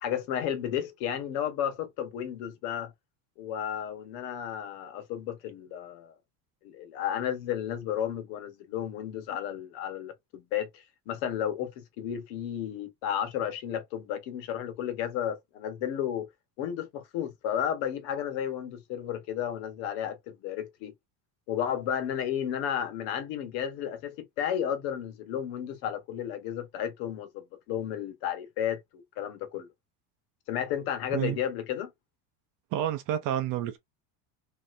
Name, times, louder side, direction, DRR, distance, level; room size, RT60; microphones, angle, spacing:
voice 1, 0.0-2.9 3.4-6.2 6.6-16.3 16.6-20.9 21.5-29.7 30.5-31.9, left 9 dB, 80° left, 1.2 m, -33 dB
voice 2, 32.7-33.8, right 11 dB, 50° right, 0.6 m, -29 dB
3.2 x 2.8 x 2.5 m
cardioid pair, 160°, 43 cm